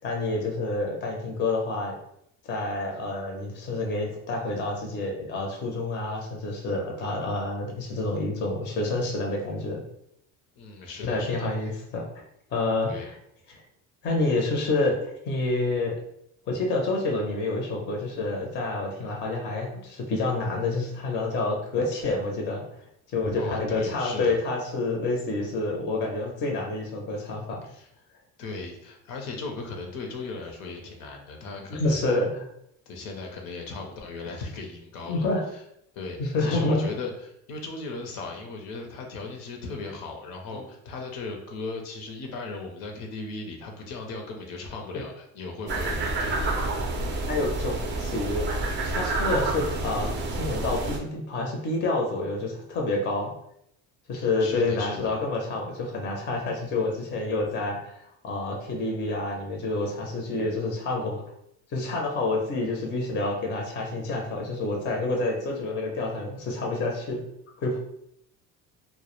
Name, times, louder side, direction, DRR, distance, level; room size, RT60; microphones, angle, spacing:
voice 1, 0.0-1.9 2.5-9.8 11.0-12.0 12.5-13.2 13.5-13.6 14.0-15.9 16.5-22.6 23.1-27.6 31.7-32.5 35.1-35.4 36.2-36.9 40.5-40.6 47.3-48.4 48.8-53.3 54.1-61.2 61.7-67.2 67.6-67.8, left 2 dB, 30° left, 0 dB, 0.5 m, -28 dB
voice 2, 10.6-11.5 12.8-13.1 23.4-24.4 27.6-27.9 28.4-32.0 32.9-35.6 35.9-46.6 54.1-55.1, left 3 dB, 75° left, 2 dB, 0.6 m, -37 dB
sound 1, 45.7-51.0, right 2 dB, 35° right, 0.4 m, -28 dB
2.1 x 2.0 x 2.9 m, 0.74 s
cardioid pair, 120°, 36 cm